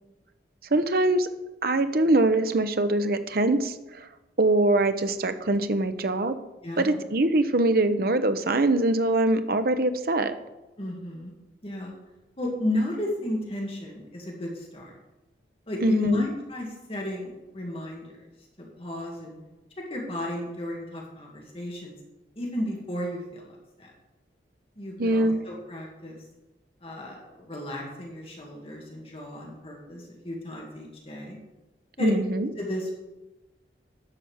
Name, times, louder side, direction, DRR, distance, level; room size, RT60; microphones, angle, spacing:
voice 1, 0.7-1.3 1.6-4.1 4.4-6.4 6.8-10.3 15.8-16.2 25.0-25.4 32.0-32.5, right 2 dB, 55° right, 10 dB, 0.8 m, -23 dB
voice 2, 6.6-6.9 10.8-11.3 11.6-11.9 12.4-14.9 15.7-18.3 18.6-19.4 19.8-21.9 22.4-23.4 23.8-23.9 24.8-26.2 26.8-31.4 32.0-32.1 32.6-32.9, left 1 dB, 30° left, -2 dB, 2.2 m, -33 dB
11.0 x 5.8 x 7.3 m, 1.0 s
head